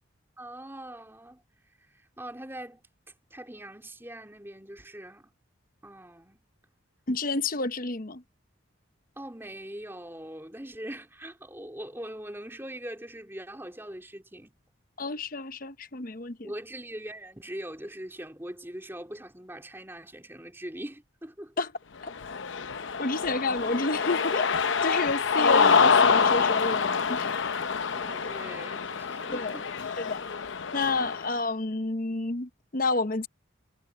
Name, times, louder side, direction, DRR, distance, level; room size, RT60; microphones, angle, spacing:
voice 1, 0.4-1.4 2.2-2.8 3.3-5.3 5.8-6.4 9.1-14.5 16.4-21.5 27.9-30.0 31.0-31.1, right 1 dB, 10° right, 3.5 m, -42 dB
voice 2, 7.1-8.2 15.0-16.5 21.6-21.7 22.0-22.1 23.0-24.5 24.8-27.3 29.3-29.6 30.0-30.2 30.7-33.3, left 3 dB, 45° left, 0.9 m, -30 dB
Cheering, 22.1-31.3, left 5 dB, 70° left, 0.7 m, -26 dB
head